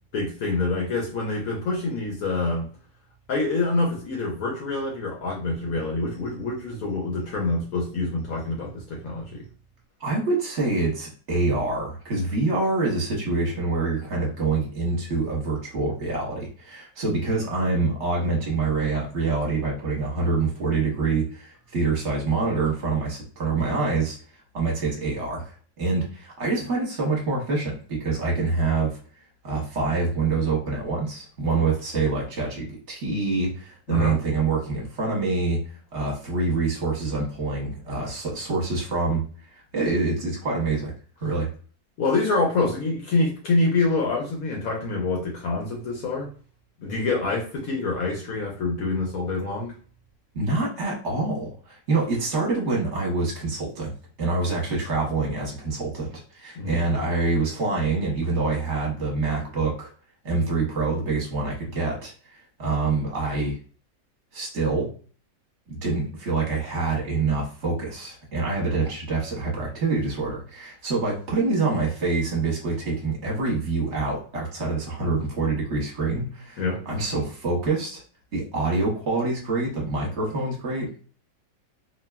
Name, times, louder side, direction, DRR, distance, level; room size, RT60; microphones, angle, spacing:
voice 1, 0.1-2.7 3.3-9.4 33.9-34.2 42.0-46.3 46.8-49.7 56.6-56.8 76.6-76.8, left 3 dB, 65° left, -1 dB, 1.0 m, -26 dB
voice 2, 10.0-24.2 24.5-29.0 29.4-35.6 35.9-39.2 39.7-40.9 41.2-41.5 50.3-53.9 54.2-59.9 60.2-63.6 64.3-64.9 65.7-78.0 78.3-80.9, right 3 dB, 45° right, -2 dB, 1.1 m, -26 dB
3.3 x 2.2 x 2.2 m, 0.41 s
omnidirectional pair, 1.9 m